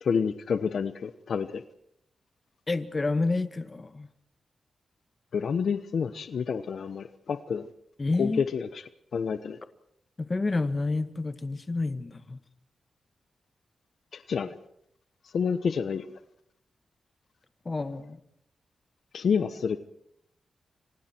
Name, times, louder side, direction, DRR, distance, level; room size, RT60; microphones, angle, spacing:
voice 1, 0.0-1.6 5.3-7.7 8.2-8.8 9.1-9.6 14.1-14.6 15.3-16.1 19.1-19.8, left 6 dB, 70° left, 1.1 m, -28 dB
voice 2, 2.7-4.1 8.0-8.4 10.2-12.4 17.6-18.2, left 3 dB, 30° left, 1.7 m, -29 dB
29.5 x 25.0 x 4.5 m
cardioid pair, 90°, 0 cm